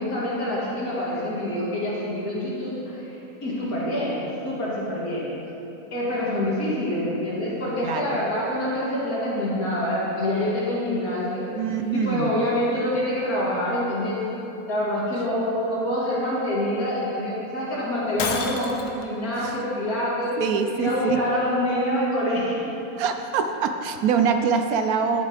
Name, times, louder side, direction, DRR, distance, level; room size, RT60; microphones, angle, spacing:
voice 1, 0.0-3.1 3.4-4.2 4.4-5.2 5.9-11.5 11.9-14.2 14.7-18.7 19.0-20.3 20.7-22.6, left 1 dB, 65° left, -7 dB, 2.6 m, -26 dB
voice 2, 7.8-8.2 11.5-12.3 19.3-19.6 20.4-21.2 23.0-25.2, right 6 dB, 75° right, 7 dB, 1.0 m, -24 dB
Shatter, 18.2-19.0, left 4 dB, 90° left, 1.3 m, -28 dB
11.5 x 7.5 x 3.4 m, 2.9 s
omnidirectional pair, 1.6 m